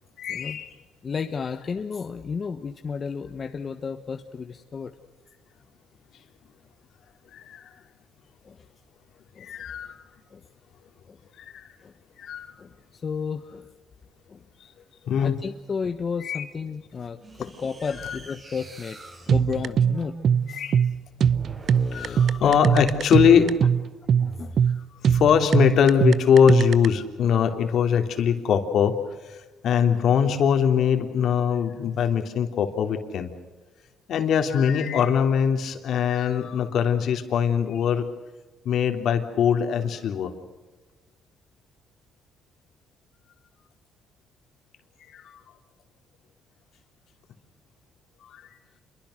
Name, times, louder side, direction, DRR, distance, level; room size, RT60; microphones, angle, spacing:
voice 1, 0.2-0.7 1.5-1.6 7.3-7.7 9.4-10.1 11.4-11.7 12.2-12.6 15.0-15.4 16.2-16.4 17.4-17.5 17.8-18.3 20.5-20.8 21.9-23.7 25.0-29.0 29.2-29.4 29.6-33.3 34.1-38.1 38.6-40.3 45.0-45.4 48.2-48.4, left 7 dB, 65° left, 6 dB, 3.0 m, -22 dB
voice 2, 1.0-4.9 8.4-8.6 9.3-9.5 10.3-10.5 11.1-11.2 11.8-11.9 12.6-13.7 14.3-14.5 15.1-19.0 19.2-20.2 20.5-20.6 21.7-22.7 24.2-24.6, left 5 dB, 40° left, 6 dB, 1.3 m, -33 dB
sound 1, 17.2-23.2 24.0-24.7, right 3 dB, 30° right, 4.8 m, -44 dB
sound 2, 19.3-26.9, right 7 dB, 55° right, 0.7 m, -22 dB
28.0 x 23.0 x 6.6 m, 1.3 s
cardioid pair, 105°, 0 cm